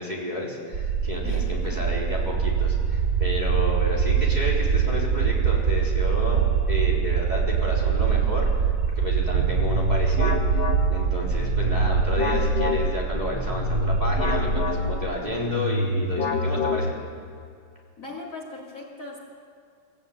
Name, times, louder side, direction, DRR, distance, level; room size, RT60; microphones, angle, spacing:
voice 1, 0.0-6.4 6.7-8.5 9.0-10.6 10.9-16.9, left 1 dB, 20° right, -4 dB, 4.0 m, -31 dB
sound 1, 0.7-15.2, right 6 dB, 45° right, 2.9 m, -24 dB
voice 2, 1.2-1.8 18.0-19.2, left 3 dB, 40° left, 0 dB, 3.0 m, -39 dB
sound 2, 9.2-17.3, left 2 dB, 90° left, 2.7 m, -27 dB
24.0 x 15.0 x 9.0 m, 2.2 s
omnidirectional pair, 2.2 m